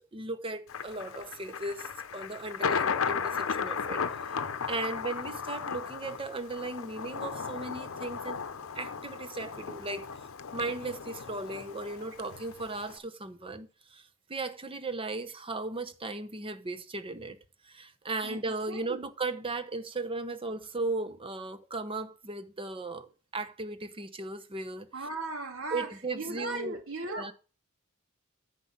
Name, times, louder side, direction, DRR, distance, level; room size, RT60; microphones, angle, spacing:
voice 1, 0.0-8.4 8.7-10.1 10.5-17.4 17.6-25.1 25.7-26.8 27.1-27.3, right 2 dB, 25° right, 1.0 m, -37 dB
Thunder, 0.7-13.0, left 6 dB, 65° left, 0.7 m, -35 dB
voice 2, 18.7-19.0 24.9-25.9 26.1-27.3, right 2 dB, 70° right, 2.2 m, -37 dB
9.9 x 4.8 x 7.5 m
head